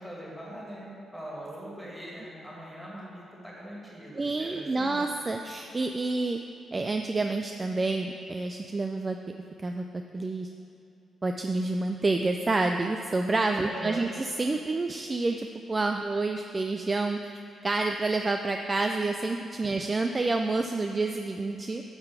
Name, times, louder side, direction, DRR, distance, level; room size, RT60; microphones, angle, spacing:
voice 1, 0.0-5.1 13.6-14.1 19.7-19.8, right 1 dB, ahead, -6 dB, 2.1 m, -42 dB
voice 2, 4.2-6.4 6.7-9.2 9.6-10.5 11.2-17.3 17.6-21.8, right 3 dB, 25° right, 4 dB, 0.3 m, -28 dB
10.5 x 3.8 x 6.8 m, 2.7 s
cardioid pair, 125°, 0 cm